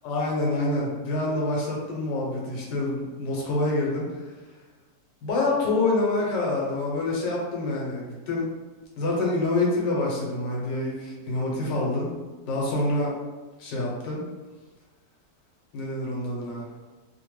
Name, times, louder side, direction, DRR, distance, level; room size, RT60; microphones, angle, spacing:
voice 1, 0.0-4.3 5.2-8.5 9.0-12.1 12.4-13.1 13.6-14.2 15.7-16.7, left 2 dB, 90° left, -3 dB, 1.5 m, -26 dB
3.4 x 2.1 x 3.1 m, 1.3 s
omnidirectional pair, 1.9 m